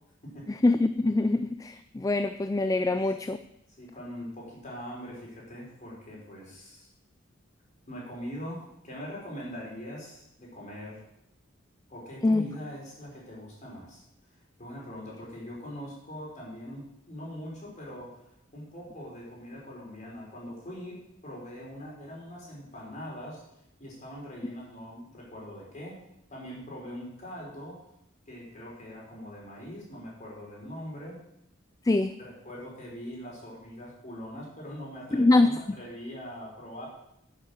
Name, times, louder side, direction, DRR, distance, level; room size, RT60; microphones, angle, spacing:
voice 1, 0.5-3.4 12.2-12.4 31.8-32.1 35.1-35.6, left 2 dB, 15° left, 10 dB, 0.4 m, -24 dB
voice 2, 3.8-6.9 7.9-11.0 11.9-14.0 14.6-18.3 18.5-23.4 23.8-26.0 26.3-27.9 28.3-31.2 32.2-36.9, equal, 35° left, -4 dB, 5.3 m, -42 dB
12.0 x 7.3 x 7.3 m, 0.80 s
head